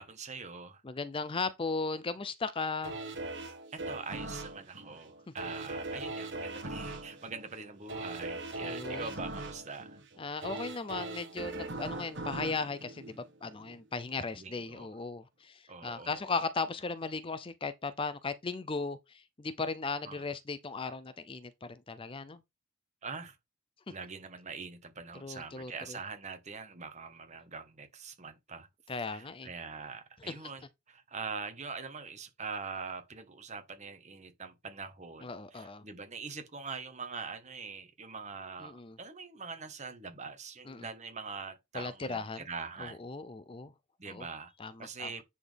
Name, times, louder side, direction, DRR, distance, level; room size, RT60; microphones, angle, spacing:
voice 1, 0.0-0.8 3.7-10.0 14.3-14.9 15.7-16.2 20.0-20.2 23.0-23.4 23.9-28.7 29.1-43.1 44.0-44.5 44.8-45.2, right 4 dB, 35° right, 1.3 m, -43 dB
voice 2, 0.8-2.9 8.6-9.1 10.2-22.4 25.2-26.0 28.9-29.5 35.2-35.8 38.6-39.0 40.7-40.9 41.7-42.4 42.8-43.7 44.1-44.2 44.6-45.1, left 4 dB, 25° left, 0.5 m, -37 dB
sound 1, 2.8-13.8 14.2-14.3, right 2 dB, 55° right, 1.6 m, -40 dB
9.9 x 4.3 x 3.4 m
head